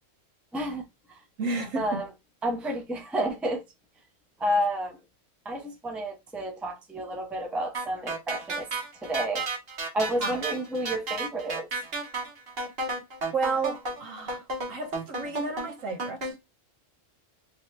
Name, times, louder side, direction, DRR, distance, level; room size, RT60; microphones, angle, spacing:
voice 1, 0.5-1.2 1.7-2.1 2.4-3.6 4.4-5.0 5.4-8.7 9.0-9.5 9.9-11.7, right 1 dB, ahead, 0.4 m, -30 dB
voice 2, 1.4-2.0 10.2-10.4 13.3-16.4, right 3 dB, 85° right, 1.3 m, -32 dB
sound 1, 7.7-16.3, right 3 dB, 50° right, 1.3 m, -33 dB
3.2 x 2.9 x 3.1 m
omnidirectional pair, 1.3 m